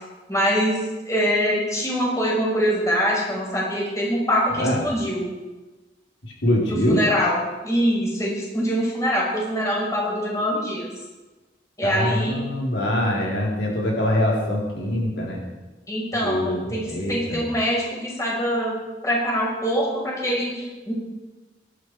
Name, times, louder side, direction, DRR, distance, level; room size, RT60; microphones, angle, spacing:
voice 1, 0.3-0.8 1.0-5.3 6.7-10.9 11.8-12.4 15.9-18.7 19.0-20.9, equal, 20° left, -4 dB, 5.9 m, -24 dB
voice 2, 6.4-7.0 11.8-15.4 16.2-17.4, left 1 dB, 80° left, -3 dB, 4.2 m, -23 dB
23.0 x 12.0 x 4.9 m, 1.2 s
head